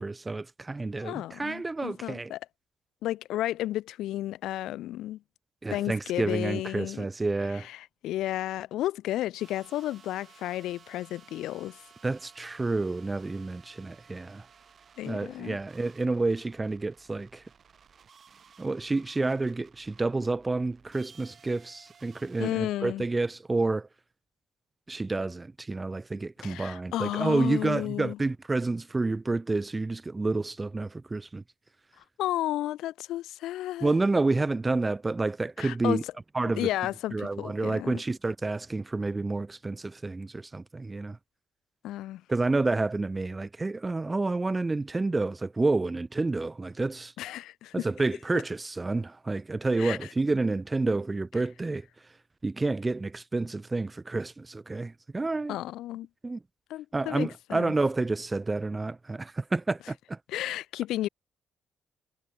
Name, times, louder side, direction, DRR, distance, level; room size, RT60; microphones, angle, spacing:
voice 1, 0.0-2.3 5.6-7.7 12.0-14.4 15.1-17.4 18.6-23.9 24.9-31.4 33.8-36.0 36.3-36.7 37.1-41.2 42.3-47.1 47.7-51.8 52.4-55.6 56.2-56.4 56.9-60.2, right 3 dB, 20° right, 0.3 m, -29 dB
voice 2, 1.0-2.4 3.0-5.2 5.7-7.1 7.5-11.8 15.0-15.6 22.4-23.1 26.4-28.2 32.2-34.0 35.6-36.1 36.5-38.0 41.8-42.2 47.2-47.9 48.3-48.4 49.8-50.1 55.5-56.1 56.7-57.7 60.3-61.1, left 14 dB, 85° left, 1.0 m, -33 dB
sound 1, 9.4-22.5, right 6 dB, 50° right, 6.7 m, -57 dB
cardioid pair, 90°, 0 cm